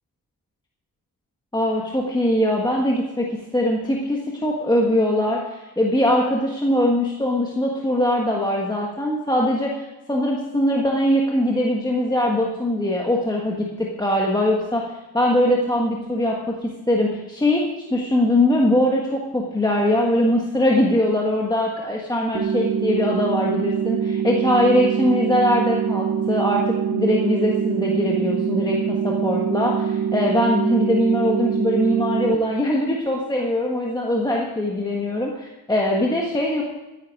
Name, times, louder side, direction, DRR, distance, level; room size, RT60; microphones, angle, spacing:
voice 1, 1.5-36.6, left 1 dB, 10° left, -2 dB, 1.4 m, -21 dB
sound 1, 22.3-32.4, right 7 dB, 50° right, 0.9 m, -24 dB
14.0 x 9.4 x 5.3 m, 1.0 s
wide cardioid pair, 120°, 37 cm